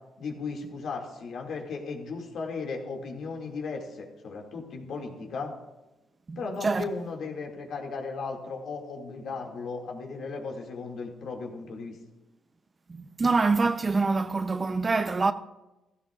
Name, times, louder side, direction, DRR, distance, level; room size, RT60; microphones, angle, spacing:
voice 1, 0.2-5.5 6.4-12.0, left 4 dB, 70° left, 2.2 m, -36 dB
voice 2, 6.3-6.9 13.2-15.3, right 3 dB, 30° right, 0.5 m, -25 dB
15.0 x 13.5 x 2.4 m
cardioid pair, 90°, 0 cm